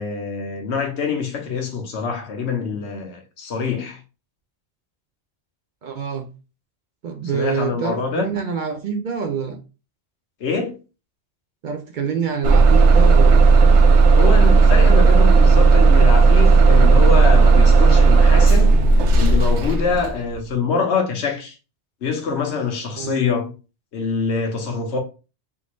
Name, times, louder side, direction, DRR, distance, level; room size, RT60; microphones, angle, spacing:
voice 1, 0.0-4.0 7.3-8.3 10.4-10.8 14.2-18.7 19.1-21.6 22.0-23.5 23.9-25.0, left 5 dB, 75° left, 1.1 m, -25 dB
voice 2, 5.8-6.3 7.0-9.6 11.6-13.4 22.9-23.2, right 6 dB, 55° right, 0.6 m, -26 dB
Bus / Engine starting, 12.4-20.2, right 4 dB, 85° right, 0.9 m, -12 dB
3.6 x 2.5 x 3.0 m
omnidirectional pair, 1.1 m